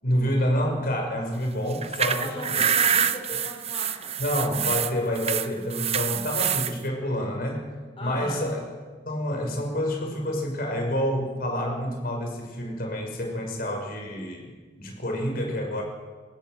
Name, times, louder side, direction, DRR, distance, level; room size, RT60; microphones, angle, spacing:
voice 1, 0.0-2.7 4.2-7.7 8.0-8.7 9.1-15.8, equal, 50° left, 1 dB, 5.7 m, -28 dB
sound 1, 1.7-6.7, right 8 dB, 35° right, 0.9 m, -26 dB
voice 2, 2.2-4.2 8.0-8.4, left 2 dB, 30° left, -1 dB, 5.3 m, -38 dB
25.5 x 18.5 x 8.0 m, 1.4 s
head